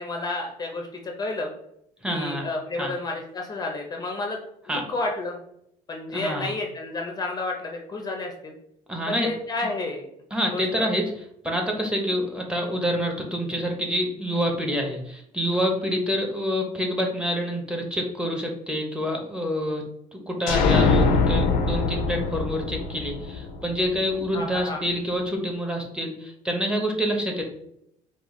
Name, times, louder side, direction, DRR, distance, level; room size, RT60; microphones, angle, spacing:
voice 1, 0.0-1.5 2.1-4.4 4.7-5.4 5.9-8.5 9.1-10.1 10.5-10.9 24.3-24.8, left 2 dB, 25° left, 2 dB, 0.6 m, -31 dB
voice 2, 2.0-2.5 2.8-2.9 4.7-4.8 6.1-6.5 8.9-9.3 10.3-11.0 11.4-19.8 20.1-27.4, equal, 5° right, 1 dB, 0.8 m, -27 dB
sound 1, 20.5-24.2, left 4 dB, 75° left, 0.6 m, -23 dB
5.0 x 2.3 x 3.6 m, 0.75 s
cardioid pair, 135°, 15 cm